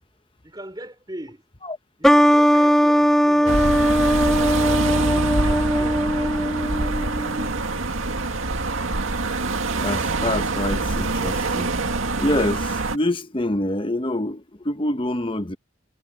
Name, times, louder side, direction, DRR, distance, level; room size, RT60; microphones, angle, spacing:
voice 1, 0.4-1.4 2.0-6.0, right 1 dB, 20° right, 4.0 m, -41 dB
sound 1, 2.0-7.5, equal, ahead, 1.5 m, -19 dB
sound 2, 3.5-13.0, right 3 dB, 85° right, 2.0 m, -25 dB
voice 2, 9.5-11.7 12.2-15.6, left 1 dB, 25° left, 1.0 m, -26 dB
head